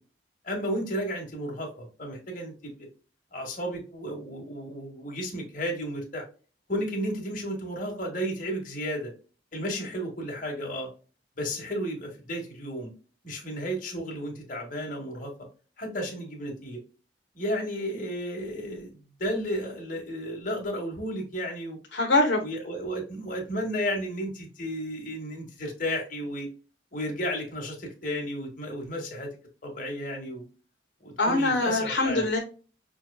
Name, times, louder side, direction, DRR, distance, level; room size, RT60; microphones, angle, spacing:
voice 1, 0.4-2.7 3.3-6.2 6.7-9.1 9.5-10.9 11.4-12.9 13.2-15.3 15.8-16.8 17.3-21.8 22.4-26.5 26.9-29.3 29.6-30.4 31.0-32.3, equal, 45° left, 0 dB, 1.3 m, -33 dB
voice 2, 21.9-22.4 31.2-32.4, left 2 dB, 75° left, 1 dB, 0.9 m, -23 dB
5.9 x 2.3 x 2.3 m, 0.36 s
head